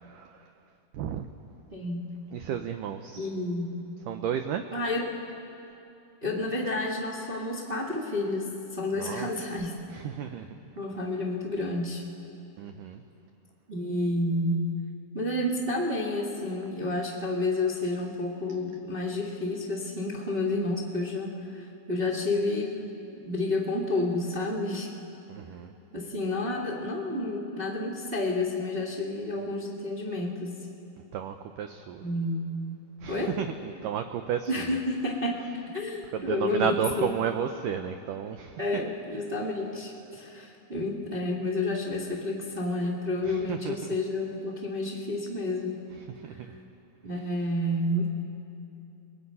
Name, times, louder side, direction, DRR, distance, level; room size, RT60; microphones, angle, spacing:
voice 1, 0.0-0.5 0.9-1.3 2.3-3.3 4.1-4.6 9.0-9.3 9.9-10.6 12.6-13.0 25.3-25.7 31.1-32.0 33.0-34.8 36.1-38.6 43.3-43.8 46.2-46.5, right 8 dB, 90° right, 7 dB, 1.8 m, -32 dB
voice 2, 1.7-2.2 3.1-3.7 4.7-5.1 6.2-9.7 10.7-12.0 13.7-14.6 15.1-22.9 23.2-24.9 25.9-30.6 32.0-32.6 33.1-33.4 34.5-37.1 38.6-45.8 46.3-46.4 47.0-48.1, left 2 dB, 45° right, -3 dB, 0.7 m, -30 dB
28.5 x 21.0 x 5.5 m, 2.8 s
omnidirectional pair, 4.7 m